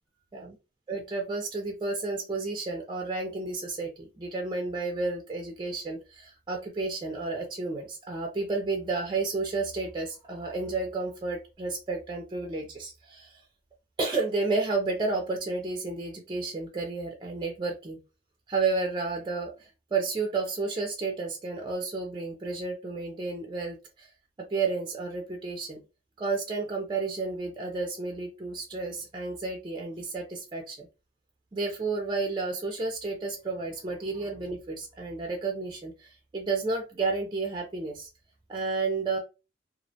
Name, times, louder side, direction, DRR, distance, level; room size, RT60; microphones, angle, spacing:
voice 1, 0.9-13.4 14.0-18.0 18.5-24.1 24.5-25.8 26.2-30.9 31.5-38.1 38.5-39.2, right 3 dB, 25° right, 2 dB, 0.4 m, -31 dB
2.4 x 2.0 x 2.6 m, 0.29 s
head